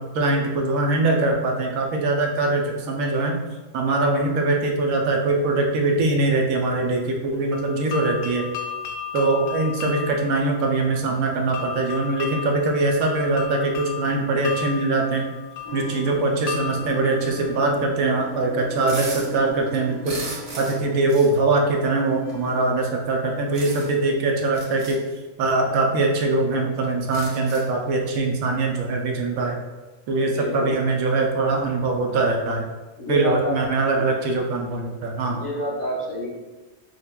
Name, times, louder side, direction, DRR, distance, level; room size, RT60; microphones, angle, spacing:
voice 1, 0.0-3.4 3.7-8.5 9.1-15.2 15.7-20.2 20.6-25.0 25.4-29.6 30.1-32.7 33.1-35.4, right 2 dB, 80° right, 1 dB, 1.0 m, -22 dB
sound 1, 7.5-18.3, left 8 dB, 85° left, 1.0 m, -35 dB
sound 2, 15.6-22.6, right 2 dB, 25° left, 0.6 m, -38 dB
sound 3, 18.8-19.3 19.7-20.8 21.1-21.4 22.3-22.4 23.5-24.0 24.5-25.0 25.9-26.0 26.3-26.4 26.8-27.8, right 2 dB, 55° right, 1.0 m, -36 dB
voice 2, 30.2-30.8 33.0-33.6 33.9-34.2 35.3-36.4, equal, 55° left, -6 dB, 1.7 m, -28 dB
6.4 x 2.3 x 2.2 m, 1.2 s
omnidirectional pair, 1.5 m